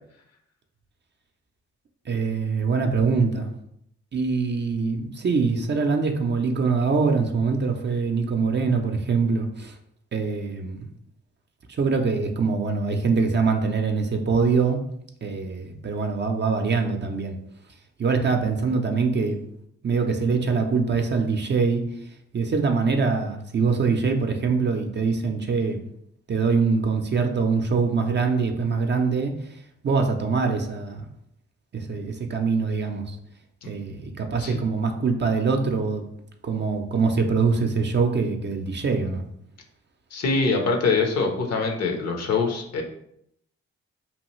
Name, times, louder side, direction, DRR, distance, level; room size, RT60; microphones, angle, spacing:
voice 1, 2.1-3.5 4.1-9.7 10.1-10.8 11.8-14.8 15.2-17.4 18.0-19.4 19.8-21.8 22.3-25.8 26.3-29.3 29.8-31.0 31.7-33.2 33.6-36.0 36.4-39.2, right 4 dB, 35° right, 4 dB, 0.5 m, -23 dB
voice 2, 40.1-42.8, left 4 dB, 55° left, 3 dB, 0.7 m, -24 dB
2.9 x 2.3 x 3.1 m, 0.73 s
supercardioid pair, 45°, 30 cm